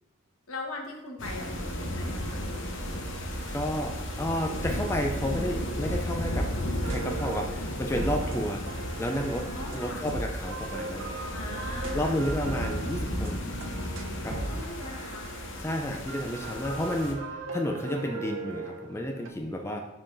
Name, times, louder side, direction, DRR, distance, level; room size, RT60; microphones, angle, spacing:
voice 1, 0.5-2.4 9.5-10.1 11.3-12.2 14.3-15.3, left 2 dB, 85° left, 1 dB, 1.2 m, -40 dB
sound 1, 1.2-17.1, equal, 60° left, 0.8 m, -34 dB
voice 2, 3.5-6.5 6.9-8.6 9.0-11.3 11.9-13.4 14.2-14.6 15.6-17.2 17.5-19.8, equal, 10° left, 2 dB, 0.4 m, -31 dB
sound 2, 6.8-15.6 16.1-19.3, right 3 dB, 70° right, 0.7 m, -39 dB
11.0 x 3.8 x 2.6 m, 1.0 s
head